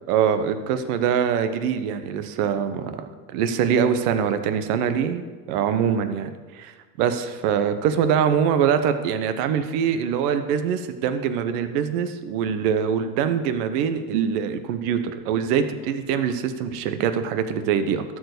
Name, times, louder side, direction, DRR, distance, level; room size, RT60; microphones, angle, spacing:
voice 1, 0.1-6.7 7.0-18.0, right 8 dB, 70° right, 10 dB, 1.1 m, -23 dB
12.5 x 4.8 x 6.6 m, 1.4 s
supercardioid pair, 100°, 46 cm